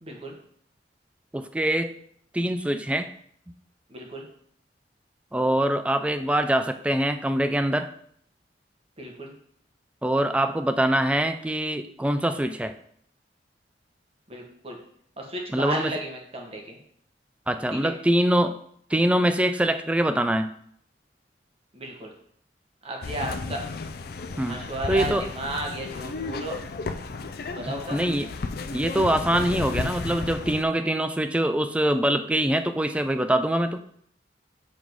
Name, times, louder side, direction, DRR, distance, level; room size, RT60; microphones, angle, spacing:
voice 1, 0.0-0.4 3.9-4.3 9.0-9.3 14.3-14.8 15.2-16.8 17.7-17.9 21.7-22.1 22.8-23.6 24.4-26.5 27.5-28.0, right 1 dB, 35° right, 1 dB, 1.3 m, -34 dB
voice 2, 1.3-1.9 2.3-3.1 5.3-7.9 10.0-12.8 15.5-15.9 17.5-18.6 18.9-20.5 24.4-24.6 24.9-25.3 27.6-28.3 28.7-33.8, right 1 dB, 5° right, 9 dB, 0.3 m, -24 dB
sound 1, 23.0-30.6, left 3 dB, 55° left, 0.5 m, -33 dB
7.1 x 3.7 x 4.6 m, 0.66 s
head